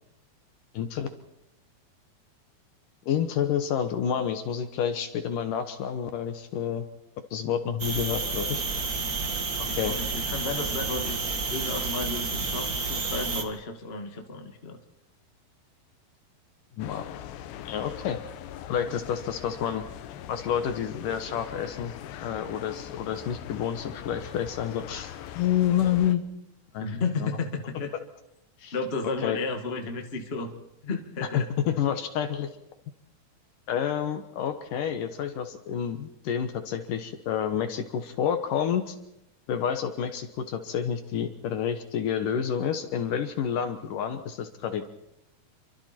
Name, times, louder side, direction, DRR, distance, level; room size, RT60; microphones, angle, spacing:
voice 1, 0.7-1.1 3.1-6.9 7.3-8.6 9.6-10.0 16.8-17.2 17.7-18.2 18.7-19.8 20.3-21.9 22.2-26.2 26.7-26.9 27.2-27.3 28.6-28.7 29.2-29.4 31.2-32.5 33.7-39.0 39.5-44.9, left 8 dB, 65° left, 8 dB, 2.4 m, -29 dB
sound 1, 7.8-13.4, right 4 dB, 65° right, 0.9 m, -30 dB
voice 2, 9.6-11.2 11.5-14.8 26.8-27.9 28.7-30.5 30.8-31.5, left 4 dB, 35° left, 4 dB, 0.9 m, -33 dB
sound 2, 16.8-26.2, left 11 dB, 85° left, 3.2 m, -41 dB
28.5 x 24.5 x 4.4 m, 0.83 s
omnidirectional pair, 4.8 m